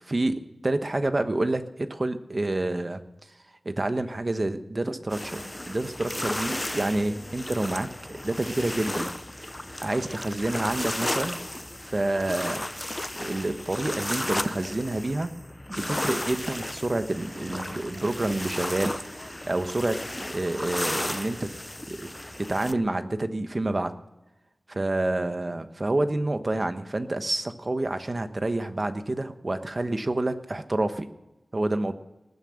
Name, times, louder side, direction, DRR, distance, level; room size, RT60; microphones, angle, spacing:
voice 1, 0.0-3.0 3.6-9.1 9.6-11.4 11.8-12.6 13.2-15.3 15.7-20.0 20.3-21.5 21.9-22.1 22.4-23.9 24.7-31.1 31.5-31.9, right 2 dB, 40° right, 9 dB, 1.1 m, -28 dB
sound 1, 5.1-22.7, left 1 dB, 20° left, 0.5 m, -34 dB
19.0 x 9.5 x 6.4 m, 0.99 s
wide cardioid pair, 75°, 0 cm